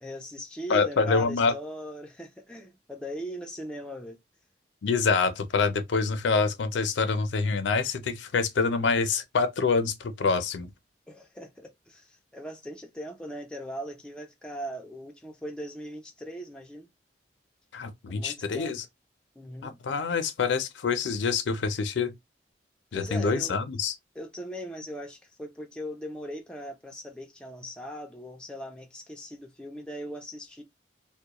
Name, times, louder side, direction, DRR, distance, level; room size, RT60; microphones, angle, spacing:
voice 1, 0.0-4.2 11.1-16.9 18.1-18.8 19.4-19.8 22.9-23.7 24.2-30.6, equal, 5° left, 0.3 m, -39 dB
voice 2, 0.7-1.5 4.8-10.7 17.7-18.8 19.6-22.1 22.9-23.9, left 4 dB, 80° left, 0.5 m, -26 dB
2.2 x 2.1 x 2.8 m
head